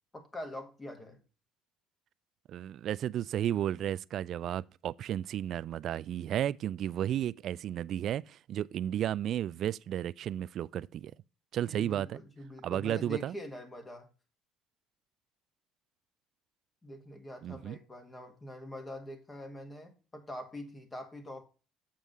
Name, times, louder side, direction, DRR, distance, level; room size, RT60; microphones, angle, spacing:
voice 1, 0.1-1.2 11.7-14.1 16.8-21.4, left 1 dB, 20° left, 1.7 m, -44 dB
voice 2, 2.5-11.1 11.5-12.2 12.6-13.3 17.4-17.8, right 11 dB, 50° right, 0.3 m, -33 dB
7.5 x 4.7 x 5.3 m
cardioid pair, 115°, 0 cm